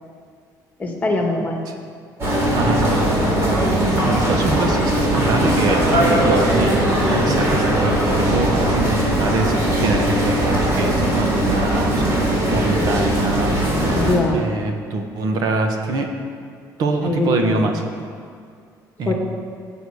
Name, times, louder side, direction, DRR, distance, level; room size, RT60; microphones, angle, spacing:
voice 1, 0.8-1.6 3.8-4.0 13.9-14.4 17.0-17.7 19.1-19.2, left 2 dB, 20° left, 1 dB, 2.0 m, -22 dB
sound 1, 2.2-14.1, right 1 dB, 40° right, 3.9 m, -19 dB
voice 2, 2.5-3.7 4.1-6.8 7.1-12.0 12.5-13.6 14.3-16.1 16.8-17.8 19.0-19.1, right 3 dB, 60° right, 4 dB, 1.5 m, -24 dB
15.0 x 7.8 x 6.6 m, 2.2 s
cardioid pair, 135°, 7 cm